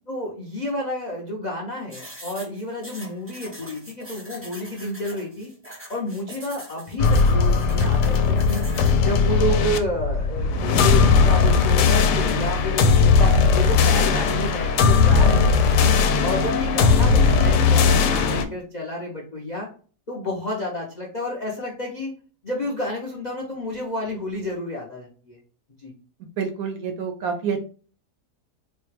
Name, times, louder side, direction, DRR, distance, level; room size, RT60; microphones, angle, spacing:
voice 1, 0.1-5.5 5.9-8.6 9.0-15.8 16.2-19.7 20.1-22.1 22.4-25.4 25.8-25.9, left 1 dB, 60° left, -1 dB, 0.4 m, -30 dB
sound 1, 1.9-9.0, right 1 dB, 10° right, 0.6 m, -42 dB
sound 2, 7.0-18.4, left 5 dB, 75° left, 1.1 m, -18 dB
voice 2, 26.4-27.6, right 6 dB, 70° right, 4 dB, 0.9 m, -27 dB
4.1 x 2.2 x 3.2 m, 0.40 s
omnidirectional pair, 1.8 m